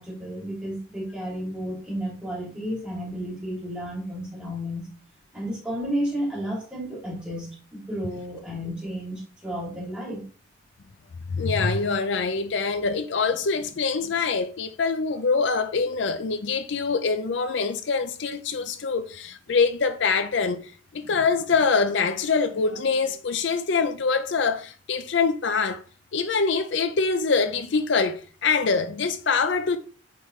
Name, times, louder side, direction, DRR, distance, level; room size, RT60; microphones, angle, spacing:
voice 1, 0.0-4.8 5.3-10.2, equal, 5° right, 2.7 m, -32 dB
voice 2, 11.3-25.8 26.1-29.8, left 4 dB, 70° left, 0.5 m, -24 dB
8.3 x 3.7 x 3.1 m
head